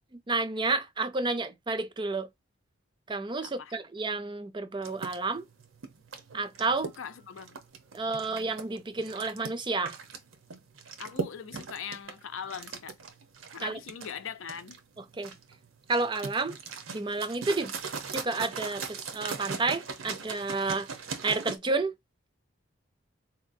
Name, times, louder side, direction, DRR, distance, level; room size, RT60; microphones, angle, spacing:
voice 1, 0.3-2.3 3.1-5.5 6.3-6.9 7.9-10.0 13.6-13.8 15.2-15.3 15.9-16.6 16.9-17.7 18.1-20.9 21.2-21.9, right 3 dB, 25° right, 0.4 m, -30 dB
voice 2, 3.4-3.8 6.8-7.6 11.0-13.0 13.5-14.8, left 7 dB, 75° left, 0.5 m, -41 dB
sound 1, 4.8-21.6, right 5 dB, 80° right, 0.8 m, -40 dB
4.2 x 2.8 x 2.6 m
head